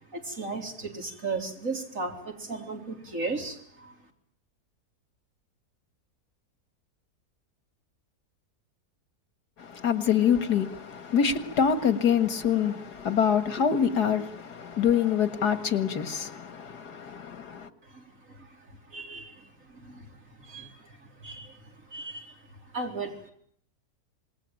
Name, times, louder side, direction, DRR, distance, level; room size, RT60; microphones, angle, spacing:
voice 1, 0.1-4.0 17.8-22.4 22.7-23.3, right 3 dB, 55° right, 4.4 m, -37 dB
voice 2, 9.6-17.7, left 7 dB, 85° left, 2.4 m, -25 dB
27.0 x 20.5 x 9.1 m
omnidirectional pair, 1.7 m